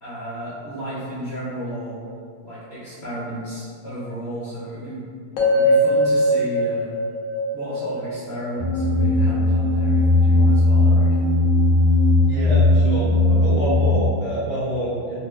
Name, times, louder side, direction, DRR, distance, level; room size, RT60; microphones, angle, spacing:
voice 1, 0.0-2.0 2.4-5.0 5.5-6.9 7.5-11.3, equal, 55° left, -14 dB, 0.7 m, -33 dB
sound 1, 5.4-9.5, equal, 80° left, 1.4 m, -21 dB
sound 2, 8.6-13.9, left 2 dB, 45° right, 1.1 m, -17 dB
voice 2, 12.2-15.2, right 1 dB, 80° right, -13 dB, 2.0 m, -27 dB
4.6 x 2.1 x 2.3 m, 2.2 s
omnidirectional pair, 2.3 m